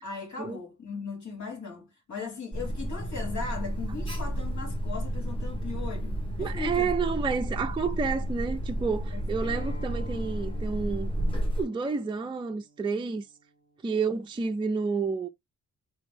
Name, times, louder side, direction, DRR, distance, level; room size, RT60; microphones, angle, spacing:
voice 1, 0.0-6.9 9.1-9.2, left 4 dB, 70° left, 2.8 m, -38 dB
Alarm, 2.5-11.6, equal, 15° left, 1.4 m, -31 dB
voice 2, 6.4-11.1 11.6-13.3 13.8-15.3, right 5 dB, 15° right, 0.4 m, -30 dB
Acoustic guitar, 9.4-14.6, equal, 35° left, 1.5 m, -51 dB
4.1 x 3.0 x 3.3 m
wide cardioid pair, 155°, 30 cm